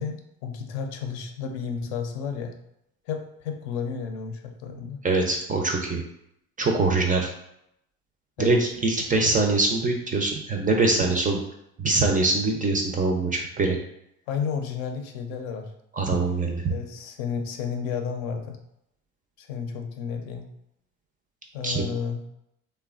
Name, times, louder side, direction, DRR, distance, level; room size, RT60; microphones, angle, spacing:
voice 1, 0.0-2.6 3.1-5.0 8.4-8.6 14.3-15.7 16.7-18.6 19.4-20.5 21.5-22.2, left 6 dB, 75° left, 4 dB, 0.6 m, -32 dB
voice 2, 5.0-6.0 6.6-7.3 8.4-11.4 11.8-13.8 16.0-16.6 21.6-21.8, right 3 dB, 20° right, 2 dB, 0.3 m, -23 dB
3.1 x 2.2 x 2.4 m, 0.79 s
hypercardioid pair, 65°, 42 cm